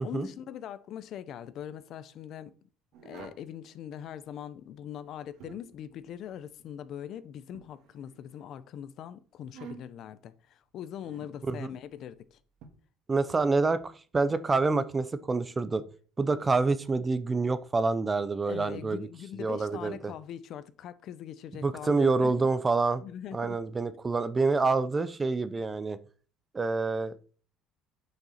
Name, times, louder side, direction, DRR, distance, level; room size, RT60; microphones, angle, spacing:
voice 1, 0.0-2.5 3.0-12.4 18.5-22.3 23.0-23.6 23.9-24.0, left 9 dB, 50° left, 0.7 m, -42 dB
sound 1, 2.9-3.5 5.0-5.8 7.5-8.4 9.4-10.1 11.0-11.3 12.6-12.7, right 7 dB, 65° right, 1.6 m, -49 dB
voice 2, 13.1-15.8 16.2-19.1 19.4-20.1 21.6-23.0 23.3-26.0 26.5-27.1, right 3 dB, 15° right, 0.5 m, -27 dB
9.1 x 6.5 x 4.1 m
cardioid pair, 150°, 0 cm